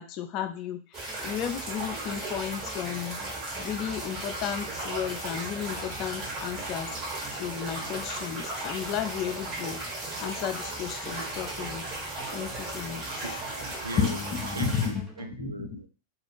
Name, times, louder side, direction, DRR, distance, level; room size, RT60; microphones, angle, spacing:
voice 1, 0.0-3.2 3.6-6.9 7.3-9.8 10.2-11.9 12.3-13.2 14.0-15.1 15.4-15.9, left 9 dB, 40° left, 8 dB, 0.4 m, -33 dB
sound 1, 0.9-14.9, right 2 dB, 35° right, 1.5 m, -36 dB
sound 2, 1.1-15.3, right 3 dB, 10° right, 0.6 m, -49 dB
voice 2, 13.2-15.9, right 3 dB, 80° right, 7 dB, 0.3 m, -39 dB
2.4 x 2.4 x 3.2 m, 0.38 s
figure-of-eight pair, 90°, 0 cm